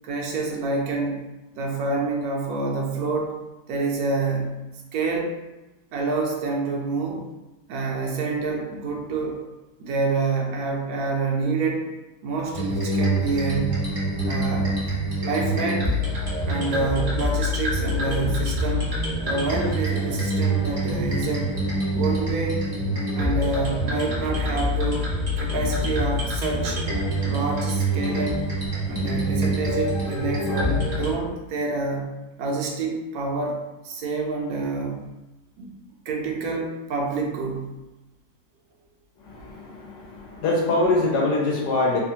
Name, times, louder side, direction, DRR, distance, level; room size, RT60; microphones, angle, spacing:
voice 1, 0.0-1.2 1.6-3.4 3.7-4.6 4.9-5.4 5.9-7.2 7.7-9.4 9.8-11.9 12.2-13.9 14.2-14.8 15.2-15.9 16.5-18.9 19.2-21.6 21.9-22.6 23.1-26.8 27.2-28.4 28.9-35.1 35.6-35.8 36.1-37.7, right 3 dB, 70° right, 0 dB, 1.0 m, -27 dB
sound 1, 12.5-31.1, equal, 35° right, 0.6 m, -25 dB
voice 2, 39.3-42.0, left 2 dB, 80° left, -3 dB, 1.3 m, -24 dB
3.1 x 2.3 x 2.7 m, 1.0 s
omnidirectional pair, 1.8 m